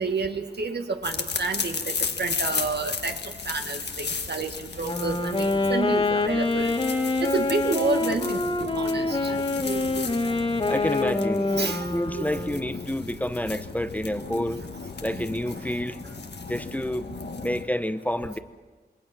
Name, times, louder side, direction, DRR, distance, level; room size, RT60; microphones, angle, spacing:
voice 1, 0.0-3.2 3.5-6.7 7.3-10.3 11.5-11.9 12.1-12.3, right 4 dB, 75° right, 5 dB, 1.9 m, -30 dB
sound 1, 1.0-17.6, left 5 dB, 80° left, 1.5 m, -35 dB
Wind instrument woodwind instrument, 4.7-12.8, left 3 dB, 35° left, 2.3 m, -26 dB
voice 2, 10.7-14.6 15.0-16.0 16.5-17.1 17.4-18.4, left 1 dB, 10° left, 10 dB, 0.8 m, -29 dB
27.0 x 22.0 x 6.1 m, 1.4 s
wide cardioid pair, 115°, 17 cm